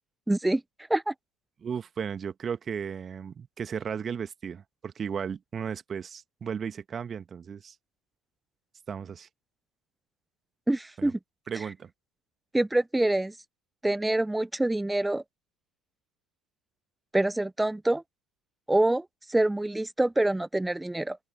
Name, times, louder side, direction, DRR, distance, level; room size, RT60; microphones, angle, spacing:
voice 1, 0.3-0.6 0.9-1.1 10.7-11.2 12.5-13.3 13.8-15.2 17.1-18.0 18.7-21.2, right 1 dB, 10° right, 0.7 m, -26 dB
voice 2, 1.6-7.7 8.9-9.3 11.0-11.1 11.5-11.9, right 7 dB, 30° right, 1.8 m, -35 dB
open air
figure-of-eight pair, 65°, 0 cm